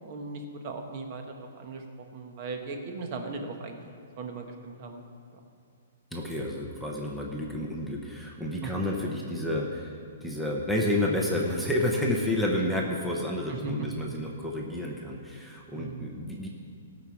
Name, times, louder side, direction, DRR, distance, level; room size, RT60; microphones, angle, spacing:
voice 1, 0.0-1.8 2.1-3.8 4.2-5.0 5.3-5.4 8.6-8.7 13.5-13.7 15.7-16.1, right 4 dB, 30° right, 4 dB, 1.3 m, -38 dB
voice 2, 6.1-16.5, left 1 dB, ahead, -3 dB, 0.8 m, -30 dB
17.5 x 6.3 x 7.2 m, 2.3 s
hypercardioid pair, 175°, 0 cm